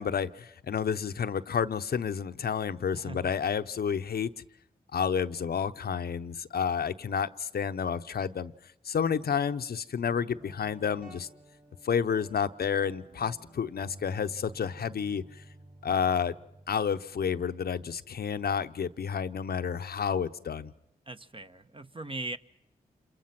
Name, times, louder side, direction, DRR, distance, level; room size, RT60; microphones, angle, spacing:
voice 1, 0.0-4.3 4.9-8.5 8.8-11.3 11.8-15.2 15.8-16.3 16.7-20.7, left 7 dB, 70° left, 10 dB, 0.8 m, -30 dB
voice 2, 2.9-3.3 21.1-22.4, right 2 dB, 30° right, 8 dB, 1.1 m, -39 dB
Guitar, 10.0-19.5, right 1 dB, 50° right, 5.7 m, -53 dB
27.5 x 23.0 x 5.9 m, 0.81 s
supercardioid pair, 40°, 17 cm